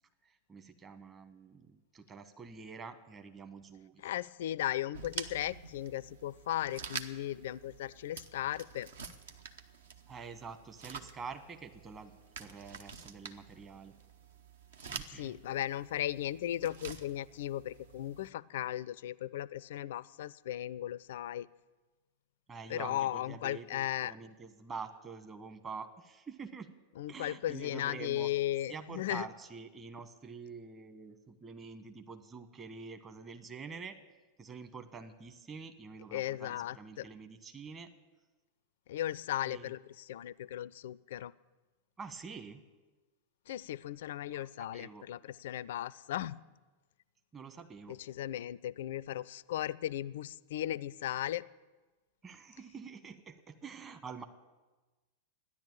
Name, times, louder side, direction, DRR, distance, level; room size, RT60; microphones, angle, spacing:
voice 1, 0.2-4.0 10.1-13.9 14.9-15.3 22.5-26.8 27.1-28.3 28.7-33.9 34.4-37.9 39.4-39.7 42.0-42.6 44.3-45.1 47.3-48.0 52.2-54.3, right 5 dB, 25° right, 8 dB, 1.3 m, -47 dB
voice 2, 4.0-8.9 15.1-21.5 22.7-24.1 27.0-29.3 36.1-37.1 38.9-41.3 43.5-46.4 47.9-51.4, left 13 dB, 55° left, 21 dB, 0.4 m, -36 dB
sound 1, 4.9-18.3, right 5 dB, 65° right, 0.9 m, -48 dB
13.5 x 10.5 x 8.7 m, 1.2 s
figure-of-eight pair, 90°, 0 cm